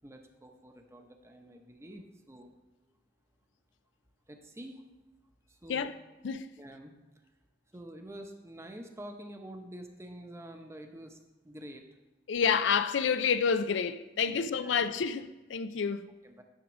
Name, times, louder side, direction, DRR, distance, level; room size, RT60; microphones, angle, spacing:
voice 1, 0.0-2.6 4.3-4.9 5.5-5.9 6.6-6.9 7.7-11.8 14.3-14.8 16.2-16.4, right 1 dB, 15° right, 0.7 m, -47 dB
voice 2, 12.3-16.1, left 6 dB, 90° left, 0.4 m, -29 dB
10.0 x 3.6 x 6.1 m
head